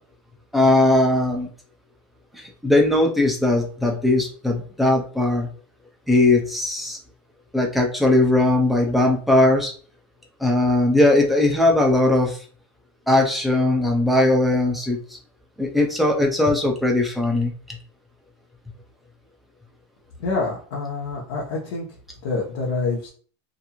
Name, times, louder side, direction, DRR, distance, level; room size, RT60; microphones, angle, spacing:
voice 1, 0.5-1.5 2.4-5.5 6.1-7.0 7.5-9.7 10.4-12.4 13.1-15.0 15.6-17.8, left 2 dB, ahead, 0 dB, 0.3 m, -19 dB
voice 2, 20.2-21.9 22.2-23.1, left 3 dB, 60° left, -4 dB, 0.9 m, -26 dB
2.9 x 2.5 x 2.3 m, 0.42 s
supercardioid pair, 170°, 15 cm